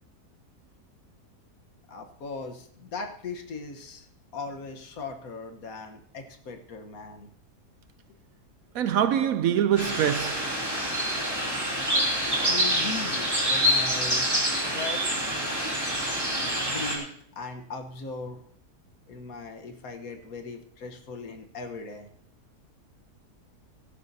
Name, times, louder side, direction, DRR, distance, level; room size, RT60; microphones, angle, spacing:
voice 1, 1.9-4.1 4.3-7.3 12.3-14.3 14.6-15.2 16.6-18.4 19.1-22.1, left 4 dB, 60° left, 1.6 m, -39 dB
voice 2, 8.7-10.6, right 10 dB, 70° right, 0.9 m, -24 dB
sound 1, 9.8-17.0, equal, 15° right, 2.9 m, -26 dB
16.5 x 12.0 x 2.8 m
omnidirectional pair, 1.7 m